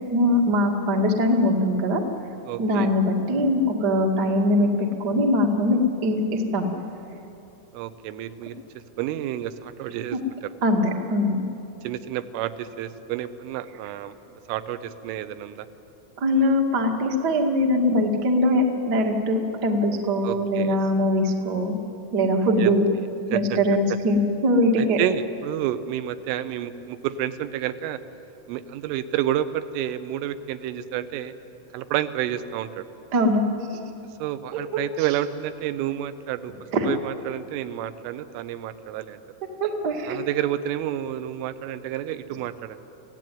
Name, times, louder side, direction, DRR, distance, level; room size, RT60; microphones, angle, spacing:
voice 1, 0.1-2.0 2.6-6.7 10.6-11.4 16.2-21.8 22.1-22.9 23.3-25.0 33.1-33.4 34.7-34.8 36.7-36.9 39.6-40.2, left 1 dB, 70° right, 1 dB, 0.9 m, -22 dB
voice 2, 2.5-2.9 7.7-8.6 9.0-10.5 11.8-15.7 20.2-20.8 22.6-22.7 23.3-23.4 24.8-28.0 28.5-31.3 31.7-32.9 34.2-36.5 36.9-39.2 40.1-42.8, right 12 dB, 90° right, 11 dB, 3.4 m, -30 dB
26.0 x 17.0 x 9.3 m, 2.9 s
omnidirectional pair, 5.6 m